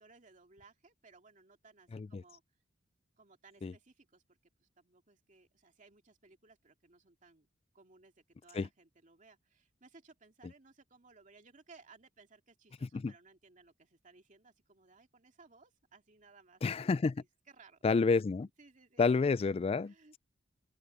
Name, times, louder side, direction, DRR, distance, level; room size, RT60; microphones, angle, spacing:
voice 1, 0.0-2.4 3.2-7.5 7.7-16.9 17.2-17.8 18.6-19.3 19.8-20.2, right 4 dB, 45° right, 2.5 m, -61 dB
voice 2, 1.9-2.2 3.6-3.7 8.5-8.7 12.8-13.1 16.6-17.1 17.8-18.5 19.0-19.9, left 4 dB, 30° left, 0.3 m, -29 dB
open air
head